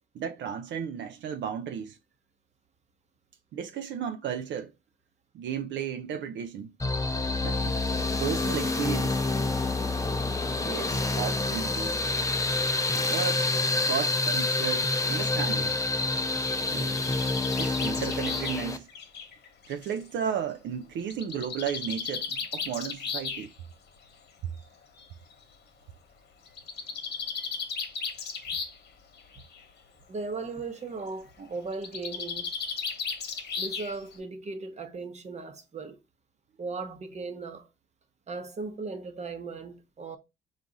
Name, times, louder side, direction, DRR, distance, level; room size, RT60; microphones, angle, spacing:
voice 1, 0.1-2.0 3.5-4.7 5.3-6.7 7.4-7.8 8.2-9.2 10.7-12.0 13.1-13.4 13.8-15.8 16.7-17.0 17.5-18.9 19.7-23.5, right 8 dB, 65° right, 0.5 m, -34 dB
sound 1, 6.8-18.8, left 3 dB, 15° left, 0.6 m, -28 dB
Bird, 16.2-20.0 21.1-23.5 24.5-24.6 25.0-25.1 25.3-25.4 26.5-28.9 29.2-29.6 31.7-34.2, left 5 dB, 55° left, 1.1 m, -35 dB
voice 2, 30.1-32.5 33.6-36.0 36.6-37.7 38.3-40.2, right 3 dB, 35° right, 0.9 m, -37 dB
4.6 x 2.5 x 3.9 m
cardioid pair, 90°, 20 cm